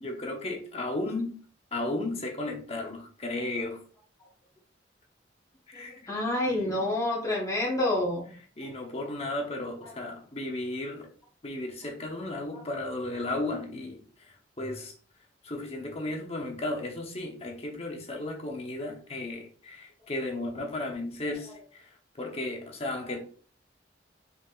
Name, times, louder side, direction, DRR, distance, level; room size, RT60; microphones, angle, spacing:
voice 1, 0.0-1.4 1.7-3.8 5.7-6.1 6.5-6.7 8.6-11.1 11.4-14.0 14.6-14.9 15.4-23.2, left 2 dB, 35° left, 0.9 m, -34 dB
voice 2, 6.1-8.2, left 1 dB, 20° left, 1.2 m, -27 dB
4.9 x 3.8 x 2.5 m
head